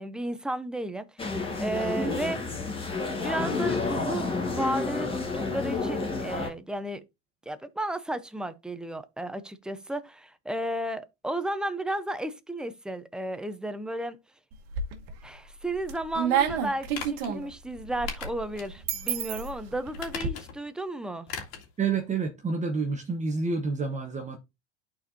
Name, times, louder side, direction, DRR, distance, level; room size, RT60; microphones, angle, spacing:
voice 1, 0.0-2.4 3.1-7.0 7.5-14.2 15.2-21.3, right 1 dB, ahead, 0.6 m, -33 dB
sound 1, 1.2-6.5, left 3 dB, 15° left, 1.6 m, -30 dB
sound 2, 14.5-15.2 15.6-20.3, right 8 dB, 60° right, 1.3 m, -30 dB
sound 3, 16.9-17.3 18.1-18.7 19.1-19.2 19.9-20.7 21.3-21.7 22.0-22.1, left 7 dB, 65° left, 2.2 m, -38 dB
voice 2, 21.8-24.4, right 4 dB, 20° right, 1.0 m, -29 dB
11.5 x 4.3 x 2.6 m
hypercardioid pair, 105°, 35 cm